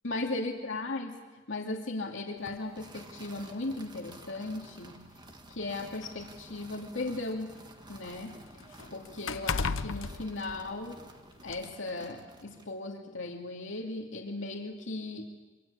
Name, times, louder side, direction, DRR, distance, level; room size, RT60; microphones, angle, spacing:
voice 1, 0.0-1.1 1.5-5.0 5.5-7.5 7.9-8.4 8.9-11.0 11.4-15.4, left 2 dB, 70° left, 0 dB, 2.5 m, -37 dB
sound 1, 2.5-2.6 3.7-3.8 4.2-4.4 5.3-7.3 7.7-11.1 11.5-11.6, left 4 dB, 90° left, 0.8 m, -36 dB
sound 2, 2.7-12.8, right 2 dB, 25° right, 1.8 m, -52 dB
26.5 x 24.5 x 8.5 m, 1.2 s
head